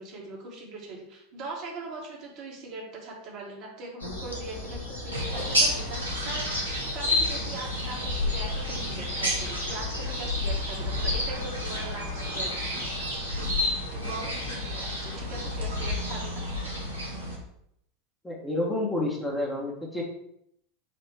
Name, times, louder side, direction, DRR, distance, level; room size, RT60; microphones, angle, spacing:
voice 1, 0.0-6.5 6.9-12.9 13.3-16.4, right 3 dB, 50° right, -2 dB, 1.3 m, -41 dB
sound 1, 4.0-15.2, left 2 dB, 80° left, 1.1 m, -36 dB
sound 2, 5.1-17.4, left 1 dB, 90° right, 0.9 m, -31 dB
voice 2, 18.2-20.0, left 1 dB, 10° left, -2 dB, 1.1 m, -29 dB
4.3 x 2.4 x 4.5 m, 0.74 s
figure-of-eight pair, 80°, 0 cm